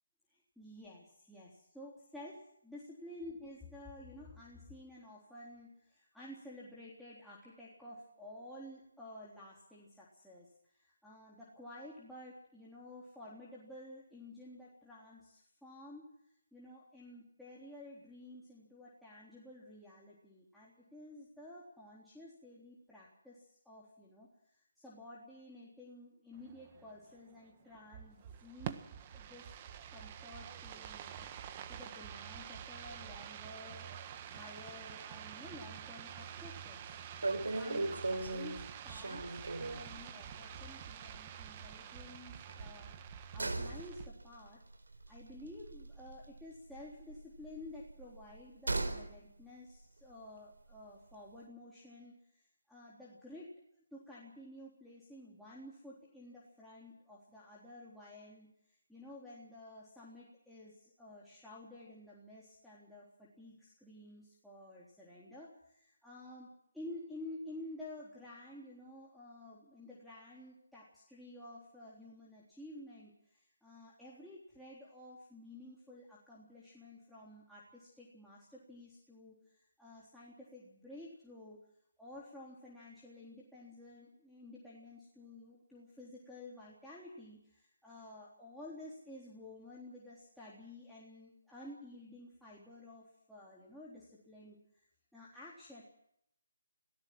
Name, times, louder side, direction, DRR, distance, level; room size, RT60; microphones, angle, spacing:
voice 1, 0.3-16.1 16.5-28.9 29.1-29.5 29.9-31.3 31.7-33.9 34.2-36.9 37.4-44.6 45.1-53.5 53.9-81.6 82.0-94.6 95.1-95.8, left 1 dB, ahead, -8 dB, 3.7 m, -52 dB
sound 1, 26.3-44.1, right 9 dB, 25° right, 1.5 m, -48 dB
sound 2, 36.3-36.6 36.8-36.9 37.2-39.9 40.3-40.5 40.7-40.8 42.5-46.4 46.7-49.1 49.4-49.5, right 2 dB, 85° right, 4.1 m, -38 dB
26.0 x 18.0 x 6.2 m, 0.74 s
figure-of-eight pair, 160°, 0 cm